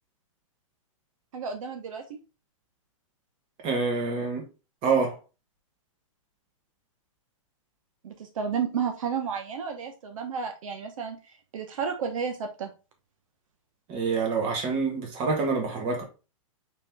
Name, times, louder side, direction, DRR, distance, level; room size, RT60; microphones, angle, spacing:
voice 1, 1.3-2.0 8.0-11.2 11.5-12.7, right 6 dB, 70° right, 1.0 m, -31 dB
voice 2, 3.6-4.4 4.8-5.2 13.9-16.0, right 4 dB, 30° right, 1.5 m, -26 dB
4.5 x 3.2 x 3.4 m
hypercardioid pair, 155°, 17 cm